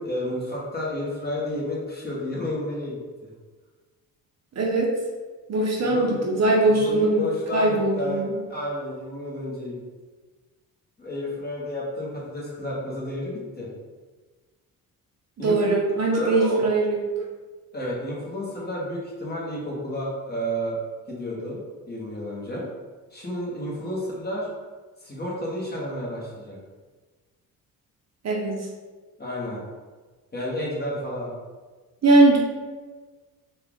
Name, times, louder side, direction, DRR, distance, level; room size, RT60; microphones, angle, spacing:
voice 1, 0.0-3.3 5.8-6.3 6.6-9.8 11.0-13.7 15.4-15.8 16.1-16.6 17.7-20.8 21.1-22.7 23.1-24.5 25.0-26.6 29.2-29.6 30.3-31.3, left 1 dB, 25° left, -5 dB, 1.3 m, -31 dB
voice 2, 4.6-4.9 5.5-7.3 7.5-8.3 15.4-17.0 28.2-28.6 32.0-32.4, right 2 dB, 45° right, -2 dB, 0.8 m, -20 dB
4.3 x 2.4 x 3.6 m, 1.4 s
cardioid pair, 105°, 36 cm